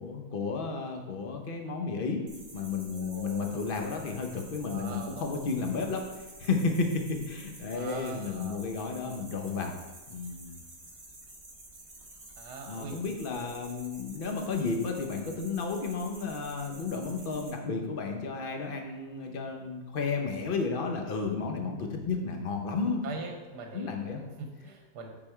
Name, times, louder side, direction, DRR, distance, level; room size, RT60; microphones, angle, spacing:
voice 1, 0.0-9.8 10.1-10.6 12.6-23.0 23.7-24.2, left 4 dB, 55° left, 3 dB, 0.6 m, -32 dB
sound 1, 2.3-17.5, right 2 dB, 20° right, 0.8 m, -50 dB
voice 2, 2.9-3.6 4.7-5.3 7.7-8.7 12.4-13.5 20.4-20.6 23.0-25.1, right 4 dB, 65° right, 3 dB, 1.3 m, -42 dB
8.8 x 4.3 x 4.5 m, 1.2 s
omnidirectional pair, 2.1 m